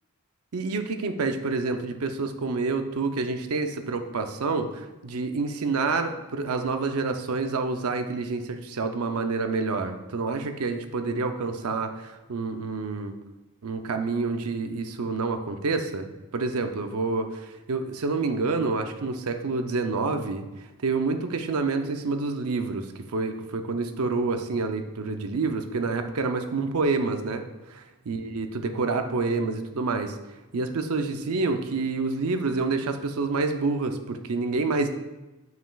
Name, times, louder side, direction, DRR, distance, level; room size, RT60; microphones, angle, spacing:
voice 1, 0.5-13.2 13.6-20.5 20.8-22.9 23.1-27.4 27.7-30.2 30.5-34.9, right 3 dB, 80° right, 7 dB, 0.6 m, -28 dB
7.6 x 5.7 x 2.3 m, 1.1 s
head